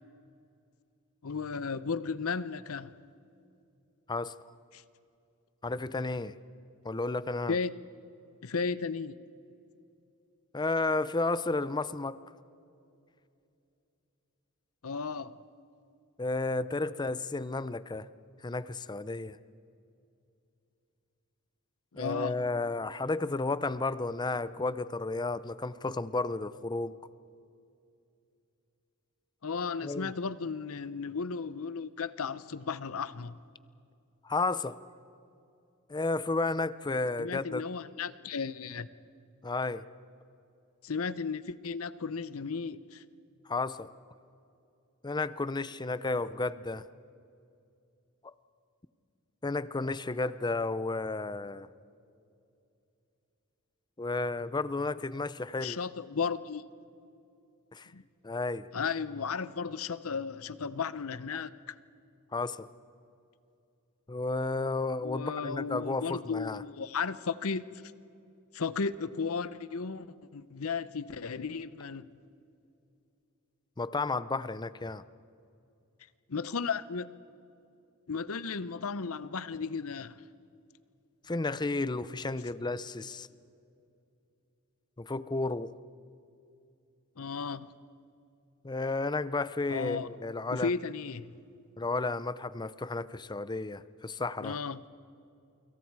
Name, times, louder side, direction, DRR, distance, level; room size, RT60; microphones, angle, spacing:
voice 1, 1.2-3.0 4.7-4.8 7.5-7.7 8.4-9.1 14.8-15.4 21.9-22.4 29.4-33.4 37.2-38.9 40.8-43.0 55.6-56.6 57.9-58.0 58.7-61.7 65.0-67.6 68.5-72.1 76.3-77.1 78.1-80.2 87.2-87.7 89.7-90.1 90.5-91.4 94.4-94.8, left 5 dB, 70° left, 0.8 m, -34 dB
voice 2, 5.6-6.3 6.8-7.6 10.5-12.2 16.2-18.1 18.4-19.4 22.0-27.0 29.8-30.1 34.2-34.8 35.9-37.6 39.4-39.8 43.5-43.9 45.0-46.8 48.2-48.3 49.4-51.7 54.0-55.8 57.7-57.9 58.2-58.7 61.3-61.4 62.3-62.7 64.1-66.6 73.8-75.0 81.3-83.3 85.0-85.7 88.6-90.7 91.8-94.6, left 3 dB, 20° left, 0.5 m, -32 dB
28.5 x 25.0 x 4.7 m
head